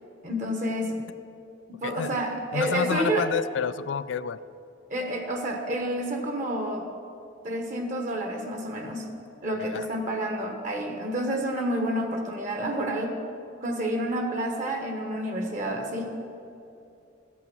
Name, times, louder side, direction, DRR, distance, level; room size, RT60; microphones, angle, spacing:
voice 1, 0.2-1.0 1.7-3.3 4.9-6.8 7.4-9.1 9.4-13.2 13.6-16.2, right 1 dB, 40° right, 3 dB, 1.2 m, -29 dB
voice 2, 1.8-2.2 2.5-4.4 9.7-9.9, left 6 dB, 70° left, 16 dB, 0.4 m, -29 dB
13.5 x 8.4 x 6.1 m, 2.8 s
head